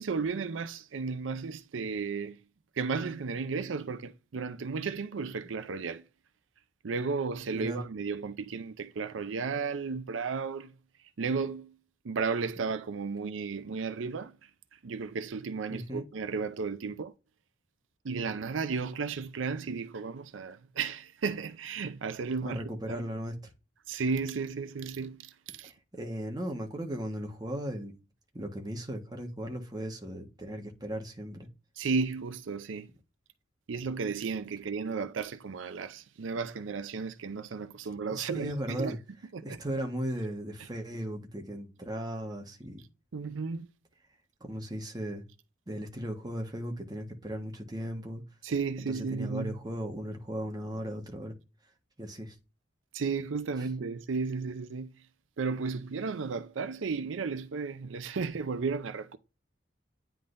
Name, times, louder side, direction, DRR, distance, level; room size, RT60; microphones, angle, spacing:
voice 1, 0.0-2.4 2.8-6.0 6.8-10.7 11.2-11.7 12.0-14.3 14.8-17.1 18.0-22.6 22.9-23.0 23.9-25.7 31.8-32.9 33.7-39.0 39.3-39.6 43.1-43.7 48.4-49.6 52.9-54.9 55.4-59.2, right 5 dB, 85° right, 0.5 m, -34 dB
voice 2, 15.7-16.0 22.4-23.3 25.6-27.9 28.3-31.5 38.1-39.0 39.4-42.8 44.4-45.2 45.7-48.2 48.9-51.3 52.0-52.3 53.6-53.7, equal, 20° right, 1.3 m, -37 dB
9.8 x 3.7 x 2.6 m
head